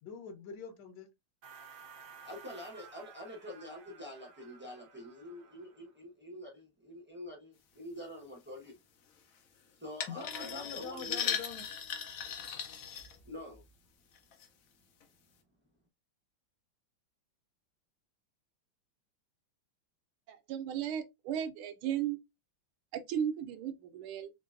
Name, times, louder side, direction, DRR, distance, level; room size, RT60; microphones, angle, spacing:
voice 1, 0.0-1.1 10.1-11.6, left 6 dB, 65° left, 1.3 m, -44 dB
sound 1, 1.4-5.9, right 6 dB, 65° right, 0.8 m, -54 dB
voice 2, 2.2-8.7 9.8-11.4 13.2-13.6, left 1 dB, 15° right, 0.4 m, -46 dB
sound 2, 10.0-13.6 14.2-14.5 15.0-15.1, left 8 dB, 80° left, 0.7 m, -38 dB
voice 3, 20.3-22.2 22.9-24.3, right 9 dB, 85° right, 1.5 m, -35 dB
3.8 x 3.2 x 2.4 m
omnidirectional pair, 2.3 m